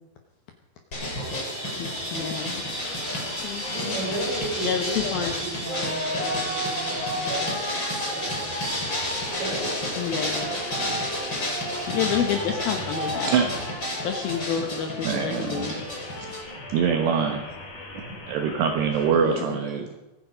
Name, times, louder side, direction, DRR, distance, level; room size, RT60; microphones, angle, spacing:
sound 1, 0.9-16.4, equal, 25° left, 6.0 m, -30 dB
voice 1, 1.8-2.8 3.3-4.1 4.3-5.4 10.0-10.5 11.9-13.5 13.9-16.4 18.5-18.6 18.9-19.7, left 8 dB, 70° left, 5 dB, 2.5 m, -30 dB
sound 2, 2.0-19.1, left 2 dB, 45° left, 4.2 m, -40 dB
voice 2, 3.7-8.7 9.3-9.7 17.0-17.1, right 2 dB, 30° right, -4 dB, 8.4 m, -34 dB
voice 3, 15.0-15.7 16.2-16.3 16.7-17.5 18.3-20.0, right 6 dB, 70° right, 4 dB, 3.1 m, -24 dB
24.0 x 9.8 x 5.1 m, 1.1 s
omnidirectional pair, 5.4 m